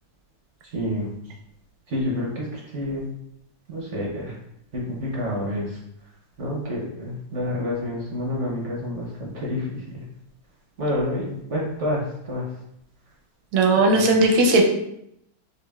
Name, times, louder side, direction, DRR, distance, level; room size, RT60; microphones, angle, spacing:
voice 1, 0.7-1.1 1.9-3.1 3.7-4.3 4.7-5.7 6.4-10.0 10.8-12.4 13.8-14.0, left 1 dB, 60° right, -2 dB, 0.7 m, -28 dB
voice 2, 13.5-14.6, right 2 dB, 80° right, 2 dB, 1.4 m, -17 dB
5.2 x 2.4 x 2.3 m, 0.76 s
omnidirectional pair, 2.1 m